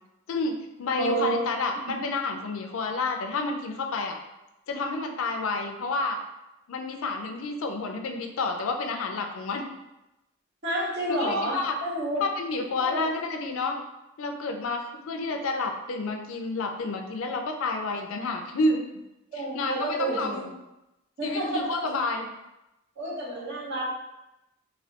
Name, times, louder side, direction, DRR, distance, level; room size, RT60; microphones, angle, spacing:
voice 1, 0.3-4.2 4.7-6.2 6.7-9.7 11.1-11.7 12.2-13.8 14.2-18.9 19.3-20.5 21.2-22.3, left 3 dB, 75° left, 4 dB, 0.4 m, -30 dB
voice 2, 1.0-1.6 1.9-2.0 10.6-12.2 12.8-13.1 19.3-20.5 21.2-21.9 23.0-23.9, right 1 dB, 55° right, -5 dB, 1.0 m, -30 dB
3.1 x 2.7 x 2.8 m, 0.94 s
head